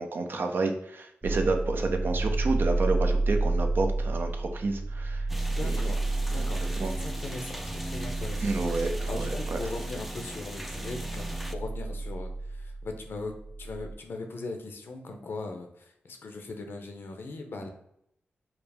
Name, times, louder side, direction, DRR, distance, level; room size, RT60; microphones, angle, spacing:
voice 1, 0.0-5.3 5.6-5.8 6.3-6.5 6.8-6.9 8.4-9.6, right 3 dB, 60° right, 4 dB, 0.6 m, -30 dB
sound 1, 1.2-13.9, right 2 dB, 25° right, 0.9 m, -31 dB
sound 2, 5.3-11.6, equal, 5° right, 0.4 m, -40 dB
voice 2, 5.5-6.1 6.3-8.4 9.1-17.7, left 3 dB, 70° left, 4 dB, 0.6 m, -39 dB
4.8 x 2.0 x 3.4 m, 0.75 s
cardioid pair, 55°, 4 cm